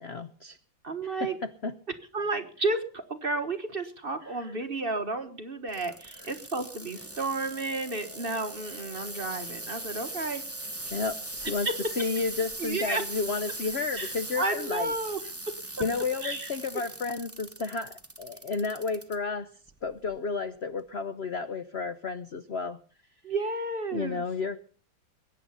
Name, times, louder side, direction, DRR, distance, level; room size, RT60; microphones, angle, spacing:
voice 1, 0.0-0.6 1.0-1.7 4.4-4.5 10.9-11.7 12.0-14.9 15.8-19.5 19.8-22.8 23.9-24.6, left 4 dB, 60° left, 12 dB, 0.7 m, -32 dB
voice 2, 0.8-1.4 2.1-10.4 11.6-11.9 12.6-13.0 14.0-15.2 15.5-15.8 16.2-16.5 23.2-24.2, right 2 dB, 30° right, 8 dB, 1.3 m, -32 dB
sound 1, 5.7-19.2 19.7-20.1 20.8-20.9, right 2 dB, 10° right, 0.7 m, -40 dB
sound 2, 6.3-15.8, left 4 dB, 30° left, 7.5 m, -57 dB
21.0 x 9.9 x 5.6 m, 0.41 s
omnidirectional pair, 2.1 m